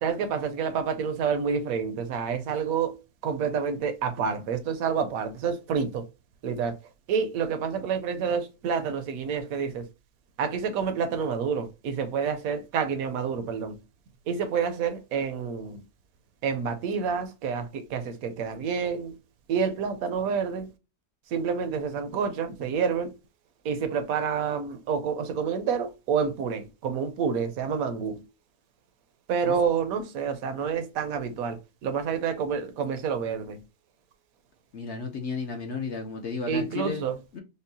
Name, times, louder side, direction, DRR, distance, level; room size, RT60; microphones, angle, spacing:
voice 1, 0.0-2.9 3.2-6.0 6.4-6.7 7.1-9.9 10.4-13.8 14.3-15.8 16.4-19.1 19.5-20.7 21.3-23.1 23.6-28.2 29.3-33.6 36.5-37.2, right 6 dB, 70° right, 1.0 m, -28 dB
voice 2, 34.7-37.0 37.3-37.4, left 4 dB, 65° left, 0.7 m, -33 dB
5.2 x 2.1 x 2.6 m
omnidirectional pair, 1.7 m